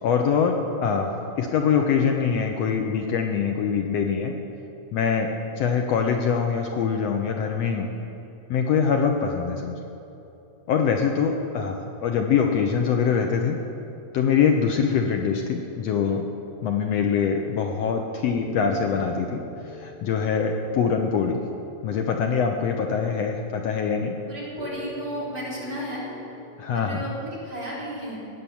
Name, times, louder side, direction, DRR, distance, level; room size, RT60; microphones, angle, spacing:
voice 1, 0.0-4.3 4.9-5.3 5.6-7.9 8.5-9.8 10.7-13.6 14.1-16.2 16.6-19.4 19.7-21.4 21.8-24.2 26.6-27.0, left 6 dB, 70° left, 3 dB, 1.8 m, -24 dB
sound 1, 14.0-15.1 18.3-22.9 24.6-27.1, left 1 dB, 40° left, 4.4 m, -43 dB
voice 2, 24.2-26.0 26.7-28.2, equal, 30° right, -7 dB, 4.3 m, -33 dB
18.0 x 9.4 x 7.1 m, 2.9 s
omnidirectional pair, 3.3 m